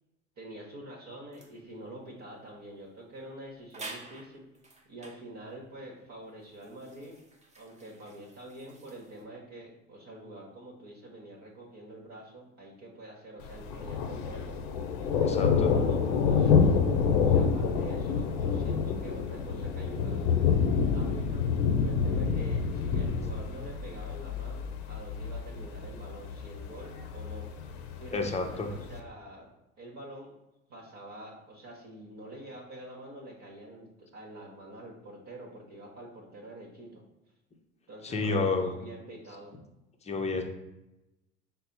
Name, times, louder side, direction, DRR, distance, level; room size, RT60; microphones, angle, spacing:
voice 1, 0.4-4.5 4.8-7.2 7.6-14.6 15.0-16.7 17.2-21.4 21.8-29.5 29.8-30.3 30.7-37.0 37.9-39.5, right 1 dB, 45° right, -3 dB, 1.1 m, -46 dB
sound 1, 1.3-1.6 2.8-2.9 3.2-3.3 3.7-5.2 6.0-9.3, right 3 dB, 15° right, 0.8 m, -49 dB
Thunder, 13.4-29.0, left 6 dB, 55° left, 0.6 m, -28 dB
voice 2, 15.2-15.7 28.1-28.7 38.0-38.7 40.1-40.4, left 3 dB, 15° left, 3 dB, 0.7 m, -30 dB
5.3 x 2.1 x 4.0 m, 0.94 s
figure-of-eight pair, 65°, 39 cm